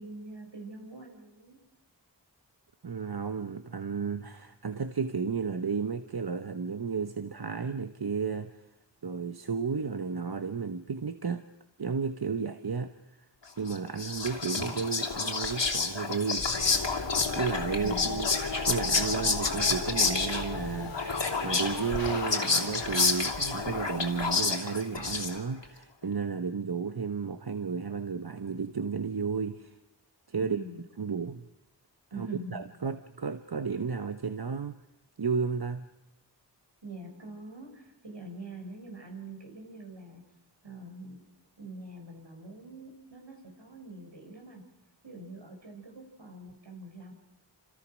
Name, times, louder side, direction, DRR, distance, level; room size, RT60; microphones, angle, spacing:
voice 1, 0.0-1.6 17.8-18.2 30.4-30.8 32.1-32.6 36.8-40.2 40.6-41.2 41.6-44.6 45.0-47.1, right 2 dB, 75° right, 6.7 m, -44 dB
voice 2, 2.8-8.6 9.0-11.4 11.8-12.9 13.6-16.5 17.3-18.3 18.7-20.9 21.4-29.7 30.3-30.6 31.0-31.4 32.2-34.7 35.2-35.9, right 5 dB, 60° right, 1.1 m, -33 dB
Whispering, 13.7-25.6, left 4 dB, 80° left, 3.0 m, -29 dB
sound 1, 16.4-24.5, left 3 dB, 55° left, 2.1 m, -38 dB
28.5 x 27.5 x 6.3 m
wide cardioid pair, 65°, 43 cm